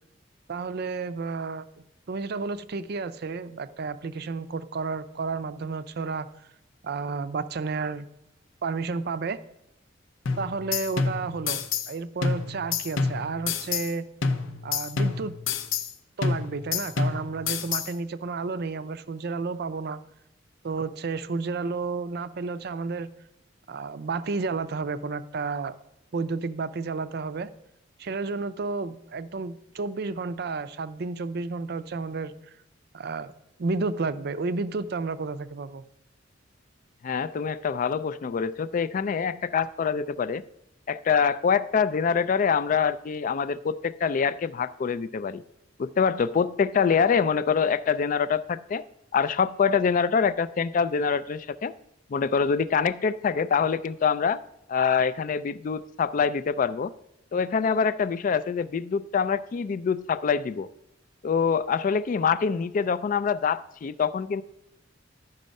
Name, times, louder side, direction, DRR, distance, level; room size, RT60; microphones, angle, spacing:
voice 1, 0.5-1.7 2.1-6.3 6.8-8.1 8.6-9.4 10.4-14.0 14.6-15.3 16.2-20.0 20.6-23.1 23.7-25.8 26.1-27.5 28.0-32.3 32.9-33.3 33.6-35.8, right 4 dB, 55° right, 14 dB, 0.5 m, -31 dB
sound 1, 10.3-11.9 12.2-13.9 14.2-15.9 16.2-17.9, left 5 dB, 90° left, 0.7 m, -28 dB
voice 2, 37.0-40.4 40.9-45.4 45.8-48.8 49.1-51.7 52.1-54.4 54.7-56.9 57.3-60.7 61.2-64.4, left 6 dB, 45° left, 15 dB, 0.3 m, -25 dB
11.0 x 5.4 x 5.2 m, 0.83 s
head